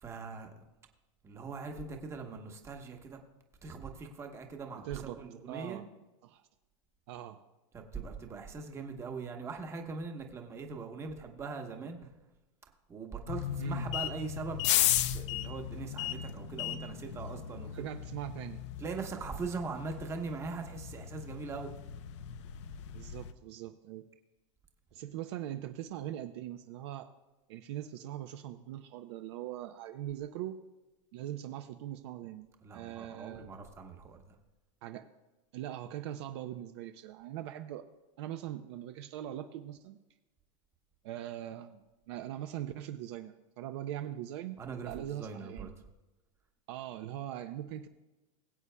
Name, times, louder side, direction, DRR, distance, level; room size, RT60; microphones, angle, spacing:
voice 1, 0.0-0.7 1.2-3.2 3.6-5.8 7.7-12.1 12.9-14.8 15.1-17.9 18.8-21.7 32.6-34.2 44.6-45.7, right 4 dB, 15° right, 4 dB, 1.0 m, -41 dB
voice 2, 4.8-5.2 5.5-5.8 6.2-6.4 7.1-7.4 13.6-13.9 17.7-18.6 22.9-24.1 24.9-27.1 27.5-30.6 31.1-32.5 32.7-33.5 34.8-35.1 35.5-37.8 38.2-40.0 41.0-45.8 46.7-47.9, right 12 dB, 55° right, 8 dB, 0.6 m, -41 dB
sound 1, 13.3-23.3, left 12 dB, 60° left, 0.6 m, -36 dB
21.5 x 8.2 x 2.2 m, 1.1 s
supercardioid pair, 160°, 17 cm